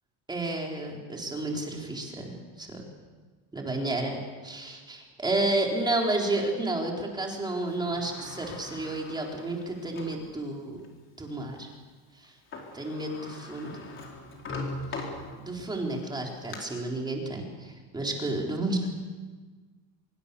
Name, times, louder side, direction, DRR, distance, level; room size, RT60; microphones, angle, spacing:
voice 1, 0.3-2.3 2.6-2.8 3.5-4.2 4.4-10.8 11.2-11.7 12.7-13.8 15.4-18.9, right 2 dB, 10° right, 0 dB, 3.9 m, -31 dB
Sliding door, 7.6-10.3 10.8-10.9 12.2-12.3 12.5-15.7 16.2-16.6, left 2 dB, 30° left, 4.5 m, -40 dB
25.5 x 23.0 x 7.0 m, 1.4 s
cardioid pair, 155°, 42 cm